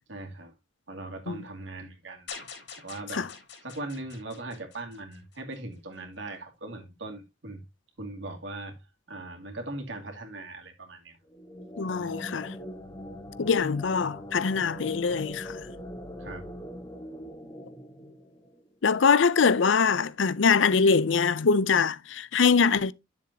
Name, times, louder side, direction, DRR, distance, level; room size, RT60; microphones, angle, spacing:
voice 1, 0.1-0.5 0.9-2.3 2.8-3.3 3.6-7.6 8.0-8.8 9.1-11.2 16.2-16.6, right 2 dB, 80° right, 2.4 m, -39 dB
sound 1, 2.3-5.6, left 5 dB, 65° left, 3.7 m, -45 dB
sound 2, 11.3-18.7, equal, 20° left, 1.2 m, -42 dB
voice 2, 11.8-12.6 13.4-15.7 18.8-22.9, left 5 dB, 80° left, 0.6 m, -23 dB
9.9 x 7.1 x 2.8 m
head